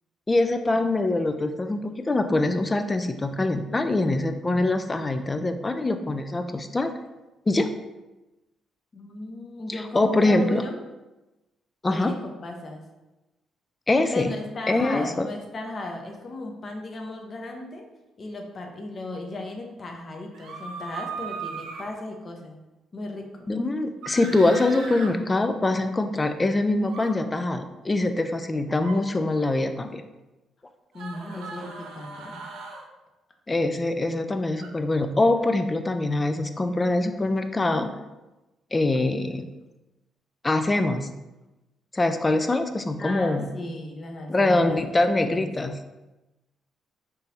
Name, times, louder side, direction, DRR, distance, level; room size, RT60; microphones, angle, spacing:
voice 1, 0.3-6.9 7.5-7.7 9.9-10.6 11.8-12.1 13.9-14.3 14.7-15.3 23.5-30.0 33.5-37.9 38.7-39.4 40.4-41.1 41.9-43.5 44.3-45.7, left 2 dB, 20° left, 8 dB, 0.4 m, -24 dB
voice 2, 8.9-10.8 11.9-12.8 14.1-17.8 18.2-22.5 22.9-23.3 30.9-32.4 43.0-45.4, left 2 dB, 40° left, 2 dB, 0.8 m, -36 dB
sound 1, 20.3-21.9 24.0-25.1 26.8-27.1 28.7-29.0 30.9-32.8 34.6-34.7, right 4 dB, 90° right, 0.7 m, -38 dB
3.7 x 2.6 x 4.2 m, 1.0 s
cardioid pair, 90°, 0 cm